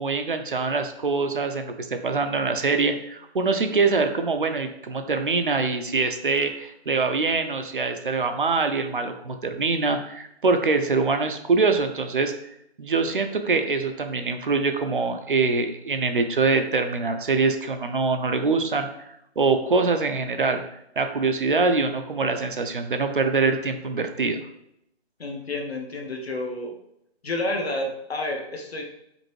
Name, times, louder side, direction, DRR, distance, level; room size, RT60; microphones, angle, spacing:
voice 1, 0.0-12.3 12.8-18.9 19.4-20.6 21.0-24.4, right 4 dB, 50° right, 6 dB, 0.4 m, -24 dB
voice 2, 25.2-26.7 27.2-28.8, left 2 dB, 65° left, 2 dB, 1.0 m, -30 dB
5.1 x 2.7 x 3.0 m, 0.78 s
hypercardioid pair, 170°, 33 cm